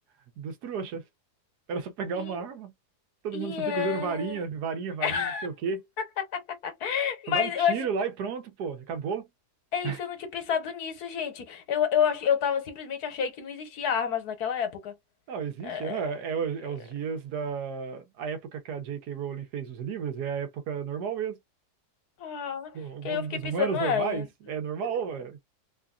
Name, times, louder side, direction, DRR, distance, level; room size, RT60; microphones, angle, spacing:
voice 1, 0.4-1.0 1.7-2.7 3.2-5.8 7.3-9.3 9.8-10.0 15.3-21.4 22.7-25.4, right 6 dB, 75° right, 1.3 m, -33 dB
voice 2, 3.3-4.5 5.0-5.5 6.3-7.9 9.7-14.9 15.6-16.0 22.2-24.3 24.8-24.9, left 8 dB, 70° left, 1.4 m, -29 dB
3.2 x 2.5 x 2.3 m
omnidirectional pair, 1.8 m